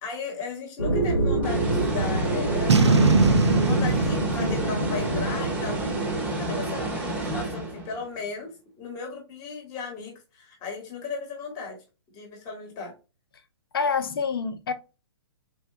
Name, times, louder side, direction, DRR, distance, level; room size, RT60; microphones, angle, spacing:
voice 1, 0.0-11.8 12.1-12.9, left 4 dB, 25° left, 1.1 m, -36 dB
sound 1, 0.8-6.8, right 2 dB, 85° left, 1.1 m, -28 dB
sound 2, 1.4-8.0, right 2 dB, 10° right, 0.7 m, -30 dB
Boom, 2.7-6.0, right 4 dB, 75° right, 0.5 m, -22 dB
voice 2, 13.7-14.7, left 5 dB, 55° left, 0.6 m, -26 dB
3.9 x 2.1 x 2.6 m
figure-of-eight pair, 125°, 14 cm